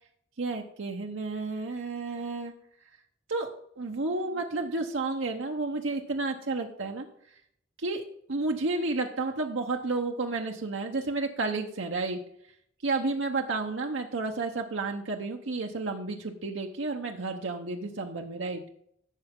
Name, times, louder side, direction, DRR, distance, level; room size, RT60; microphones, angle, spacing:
voice 1, 0.4-2.5 3.3-3.5 3.8-7.1 7.8-8.0 8.3-12.2 12.8-18.6, right 3 dB, 85° right, 2 dB, 1.0 m, -31 dB
12.0 x 7.9 x 3.7 m, 0.68 s
head